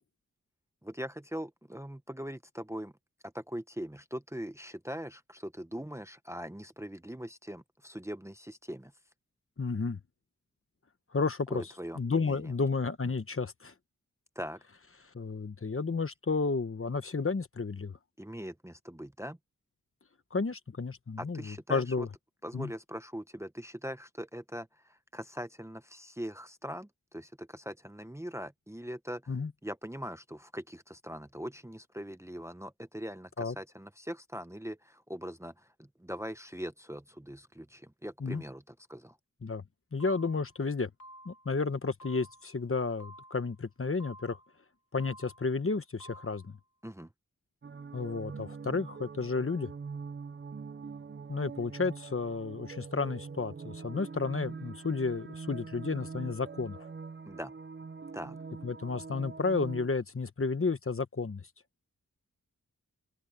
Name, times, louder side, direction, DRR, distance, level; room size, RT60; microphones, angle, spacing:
voice 1, 0.8-2.9 3.2-8.9 11.5-12.5 14.3-14.6 15.9-16.0 18.2-19.4 21.2-22.1 22.4-29.3 29.6-39.2 46.8-47.1 57.3-57.5 58.1-58.4, equal, 10° right, 0.8 m, -41 dB
voice 2, 9.6-10.0 11.1-11.6 12.0-13.7 15.1-18.0 20.3-22.1 22.5-22.7 29.3-29.5 33.4-33.5 38.2-38.4 39.4-39.6 39.9-40.9 41.2-44.4 44.9-46.6 47.9-49.7 51.3-56.9 58.6-61.4, left 4 dB, 40° left, 1.1 m, -32 dB
sound 1, 40.0-40.6 41.0-41.6 42.0-42.6 43.0-43.6 44.0-44.6 45.0-45.6 46.0-46.6, right 1 dB, 60° left, 2.9 m, -52 dB
sound 2, 47.6-59.9, right 5 dB, 35° right, 0.5 m, -44 dB
open air
wide cardioid pair, 90°, 32 cm